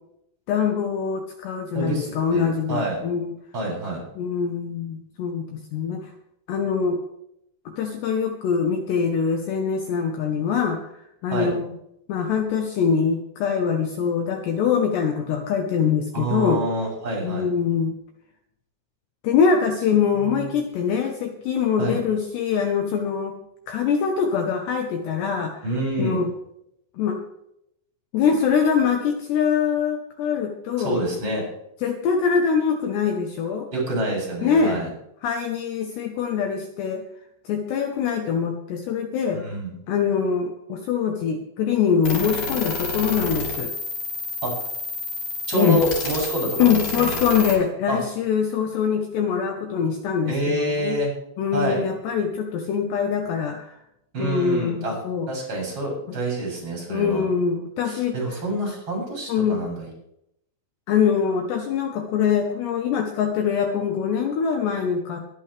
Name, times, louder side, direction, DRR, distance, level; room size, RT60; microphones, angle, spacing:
voice 1, 0.5-3.3 4.2-6.1 6.5-7.0 7.8-11.7 12.1-16.6 17.2-17.9 19.2-23.4 23.7-25.6 26.0-26.3 27.0-27.2 28.1-31.0 31.8-33.7 34.4-34.8 35.2-37.0 37.5-39.4 39.9-43.7 45.5-45.8 46.6-51.0 51.4-53.8 54.2-55.3 56.9-58.2 59.3-59.6 60.9-65.2, left 6 dB, 70° left, 3 dB, 2.9 m, -23 dB
voice 2, 1.7-3.0 3.5-4.0 11.3-11.6 16.1-17.5 20.2-20.5 21.8-22.0 25.6-26.2 30.8-31.4 33.7-34.9 39.3-39.7 44.4-44.5 45.5-47.1 47.9-48.0 50.3-51.1 51.5-51.8 54.1-55.0 55.3-57.2 57.8-59.9, right 1 dB, 25° right, -1 dB, 7.8 m, -27 dB
sound 1, 42.0-47.6, left 3 dB, 45° left, 3.4 m, -29 dB
22.5 x 12.0 x 3.4 m, 0.78 s
omnidirectional pair, 5.6 m